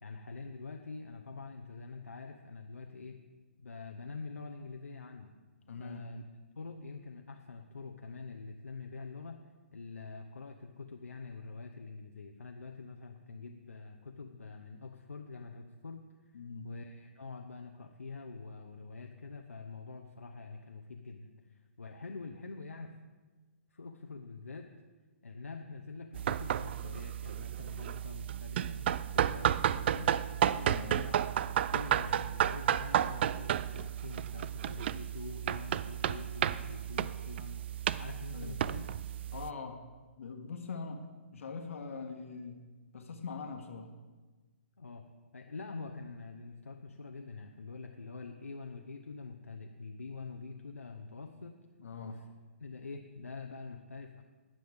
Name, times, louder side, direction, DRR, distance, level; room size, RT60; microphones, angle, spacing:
voice 1, 0.0-3.2 3.6-5.3 5.8-6.2 6.5-9.4 9.7-22.9 23.7-24.7 25.2-30.1 31.0-37.6 38.0-39.0 44.8-45.0 45.3-51.5 52.0-52.2 52.6-54.2, left 4 dB, 90° left, 3 dB, 0.9 m, -46 dB
voice 2, 5.7-6.0 16.3-16.7 30.5-31.0 38.3-38.6 39.3-39.8 40.2-42.6 42.9-43.9 51.8-52.2, left 4 dB, 70° left, 4 dB, 1.4 m, -42 dB
sound 1, 26.1-39.5, right 10 dB, 50° right, 0.4 m, -32 dB
20.5 x 7.7 x 3.5 m, 1.3 s
hypercardioid pair, 135°, 7 cm